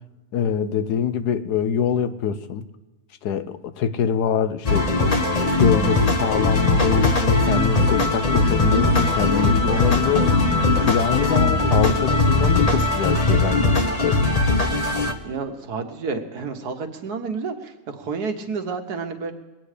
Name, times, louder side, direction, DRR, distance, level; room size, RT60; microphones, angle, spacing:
voice 1, 0.3-2.6 3.2-4.9 5.6-10.4 10.8-14.2, left 7 dB, 80° left, 1.3 m, -24 dB
sound 1, 4.7-15.1, left 3 dB, 30° left, 0.9 m, -20 dB
voice 2, 15.2-19.3, right 4 dB, 80° right, 1.7 m, -30 dB
22.0 x 9.2 x 5.0 m
omnidirectional pair, 1.7 m